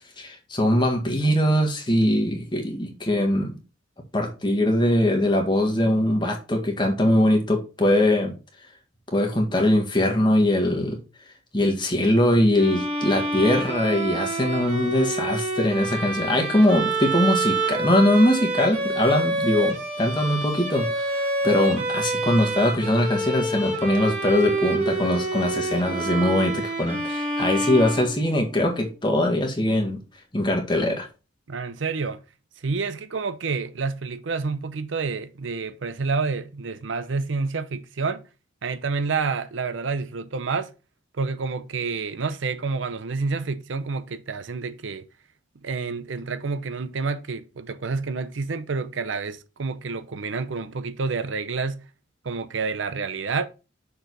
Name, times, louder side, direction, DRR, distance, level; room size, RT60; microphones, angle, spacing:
voice 1, 0.2-3.6 4.1-8.3 9.1-11.0 11.5-30.0 30.3-31.1, left 1 dB, 25° left, 1.6 m, -22 dB
Bowed string instrument, 12.5-28.5, right 2 dB, 35° right, 2.4 m, -27 dB
voice 2, 31.5-32.2 32.6-38.3 38.6-40.7 41.2-45.1 45.6-51.9 52.2-53.5, right 4 dB, 85° right, 0.6 m, -29 dB
6.4 x 4.8 x 4.0 m
head